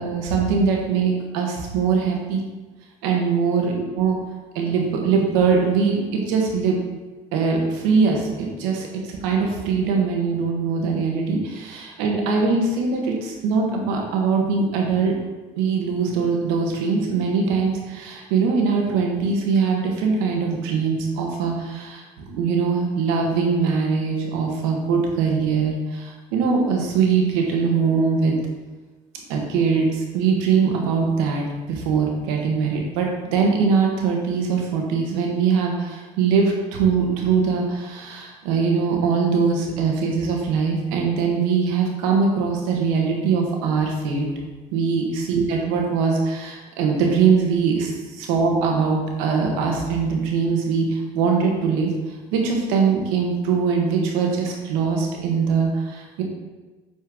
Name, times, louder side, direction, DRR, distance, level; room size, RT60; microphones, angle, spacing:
voice 1, 0.0-2.4 3.0-4.2 4.5-6.8 7.3-15.1 15.6-28.4 29.3-44.3 44.7-47.9 48.2-51.9 52.3-56.2, right 5 dB, 85° right, 0 dB, 1.4 m, -22 dB
7.8 x 4.5 x 3.7 m, 1.2 s
supercardioid pair, 85°, 16 cm